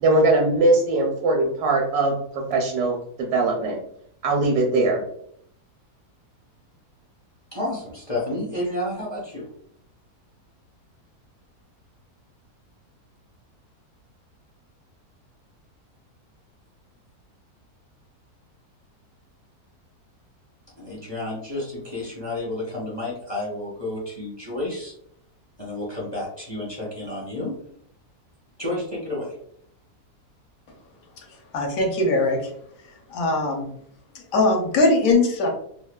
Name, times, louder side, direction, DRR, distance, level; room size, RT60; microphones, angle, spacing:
voice 1, 0.0-3.8 4.2-5.0, right 2 dB, 80° right, 0 dB, 1.1 m, -21 dB
voice 2, 7.5-9.5 20.8-24.9 25.6-27.5 28.6-29.4, left 1 dB, 25° left, -5 dB, 0.6 m, -30 dB
voice 3, 31.5-32.5 33.1-33.7 34.3-35.5, left 2 dB, 65° left, 2 dB, 1.0 m, -20 dB
2.7 x 2.3 x 2.2 m, 0.67 s
omnidirectional pair, 1.6 m